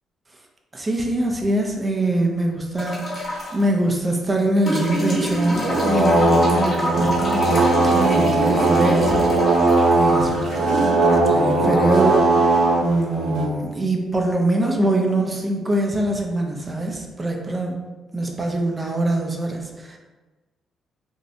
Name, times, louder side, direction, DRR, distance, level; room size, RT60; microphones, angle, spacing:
voice 1, 0.7-9.6 9.9-17.8 18.1-20.0, right 1 dB, 20° right, 1 dB, 0.4 m, -23 dB
sound 1, 2.8-3.6 4.7-11.7 13.0-13.1, equal, 35° left, 0.8 m, -27 dB
sound 2, 5.3-13.5, right 2 dB, 85° right, 0.6 m, -19 dB
2.6 x 2.0 x 2.6 m, 1.2 s
cardioid pair, 90°, 0 cm